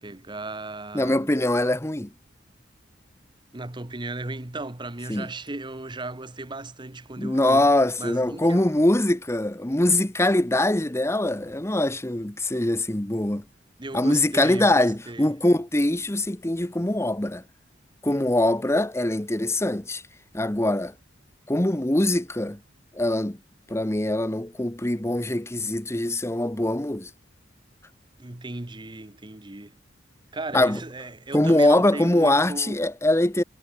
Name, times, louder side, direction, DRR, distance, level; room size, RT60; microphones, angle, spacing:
voice 1, 0.0-1.3 3.5-7.7 8.0-8.6 13.8-15.3 28.2-29.8 30.3-32.8, right 2 dB, 25° right, 1.2 m, -36 dB
voice 2, 0.9-2.1 5.1-5.3 7.2-13.4 13.9-17.4 18.0-20.0 20.3-20.9 21.5-22.6 22.9-23.4 23.7-27.1 30.5-30.8 31.3-33.4, left 1 dB, 15° left, 1.1 m, -23 dB
head